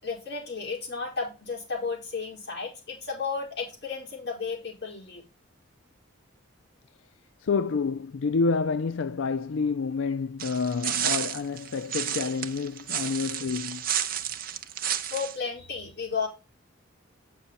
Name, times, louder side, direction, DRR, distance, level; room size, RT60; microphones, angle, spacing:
voice 1, 0.0-5.3 15.1-16.3, left 5 dB, 55° left, 4.6 m, -33 dB
voice 2, 7.4-13.9, left 4 dB, 75° left, 0.4 m, -28 dB
sound 1, 10.4-15.4, right 10 dB, 45° right, 0.6 m, -31 dB
8.9 x 6.1 x 4.1 m
head